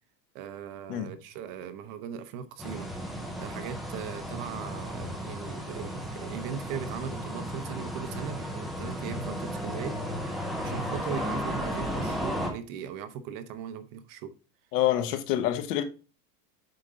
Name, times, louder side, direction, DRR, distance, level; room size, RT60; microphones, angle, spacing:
voice 1, 0.3-2.9 3.4-10.0 10.6-14.3, right 8 dB, 40° right, 0.8 m, -39 dB
sound 1, 2.6-12.5, equal, ahead, 0.4 m, -34 dB
voice 2, 14.7-15.8, left 12 dB, 70° left, 1.3 m, -26 dB
7.8 x 4.5 x 3.8 m
supercardioid pair, 145°, 50 cm